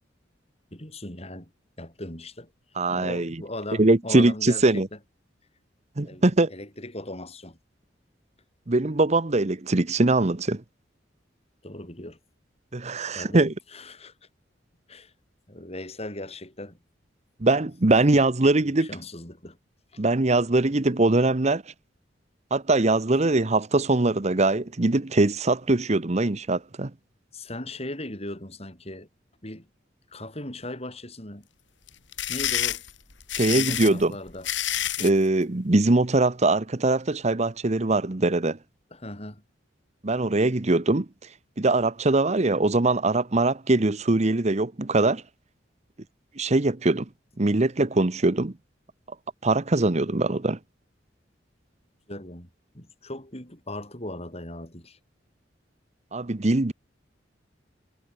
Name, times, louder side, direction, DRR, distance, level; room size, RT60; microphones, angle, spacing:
voice 1, 0.7-1.5 1.8-2.5 2.9-5.0 6.0-7.6 11.6-12.2 13.1-14.1 14.9-15.1 15.5-16.8 18.6-19.6 19.9-20.0 27.3-29.1 29.4-29.7 30.1-31.5 32.3-32.8 33.4-34.5 38.9-39.4 52.1-52.5 52.7-55.0, left 1 dB, 35° left, 7.9 m, -38 dB
voice 2, 2.8-3.4 3.8-4.9 6.0-6.5 8.7-10.6 12.7-13.5 17.4-18.9 20.0-21.6 22.5-26.9 33.4-34.1 35.0-38.6 40.0-41.1 41.6-45.2 46.4-47.0 47.4-48.5 49.4-50.6 56.1-56.7, right 2 dB, 35° right, 0.9 m, -22 dB
sound 1, 31.9-35.2, left 12 dB, 80° left, 3.4 m, -28 dB
head